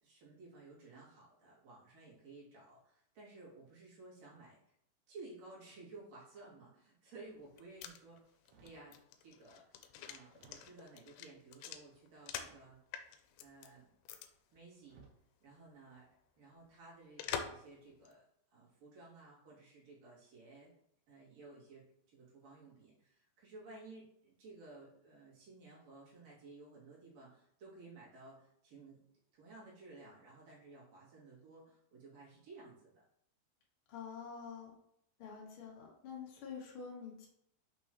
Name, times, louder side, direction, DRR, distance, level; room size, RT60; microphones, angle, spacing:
voice 1, 0.0-4.8 5.1-12.8 13.4-13.9 14.5-15.0 15.4-16.1 16.4-18.2 18.5-20.7 21.1-29.0 29.3-33.0, right 3 dB, 50° right, -6 dB, 3.0 m, -56 dB
sound 1, 7.4-12.6 12.9-13.7 14.1-14.3 14.6-14.7 17.2-17.7 18.1-18.2, left 8 dB, 90° left, 2.6 m, -45 dB
sound 2, 8.4-8.9 9.6-9.7 10.3-11.0 12.4-13.1 14.2-14.4 14.8-15.3 16.0-16.2, right 4 dB, 80° right, 1.6 m, -64 dB
voice 2, 33.9-34.7 35.2-37.3, left 6 dB, 60° left, -3 dB, 1.4 m, -47 dB
6.4 x 5.4 x 3.0 m, 0.73 s
omnidirectional pair, 4.6 m